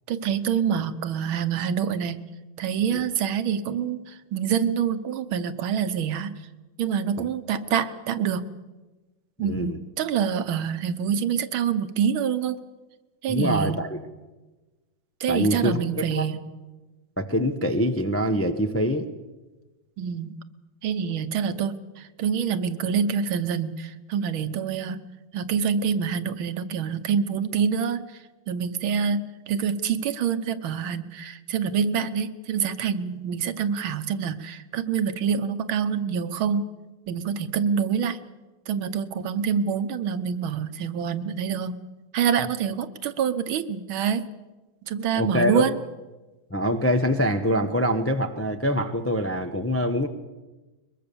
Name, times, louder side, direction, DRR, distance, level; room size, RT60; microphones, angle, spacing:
voice 1, 0.1-2.2 2.6-6.4 6.8-8.5 9.4-12.6 13.2-13.8 15.2-16.4 20.0-20.3 20.8-25.0 25.3-28.0 28.5-36.6 37.1-38.2 38.7-41.8 42.1-44.3 44.9-45.8, right 7 dB, 75° right, 12 dB, 1.8 m, -26 dB
voice 2, 9.4-9.8 13.3-14.0 15.3-16.2 17.2-19.1 45.1-45.6 46.5-50.1, equal, 20° left, 7 dB, 0.4 m, -24 dB
22.0 x 22.0 x 6.9 m, 1.2 s
omnidirectional pair, 2.3 m